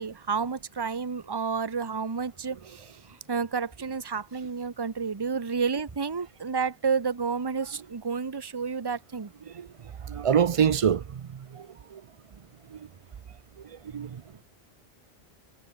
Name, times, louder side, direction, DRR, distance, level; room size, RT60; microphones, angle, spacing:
voice 1, 0.0-9.3, right 5 dB, 25° right, 0.9 m, -30 dB
voice 2, 10.1-11.2 11.5-11.7 11.9-12.0 13.9-14.2, right 8 dB, 50° right, 0.4 m, -24 dB
omnidirectional pair, 1.1 m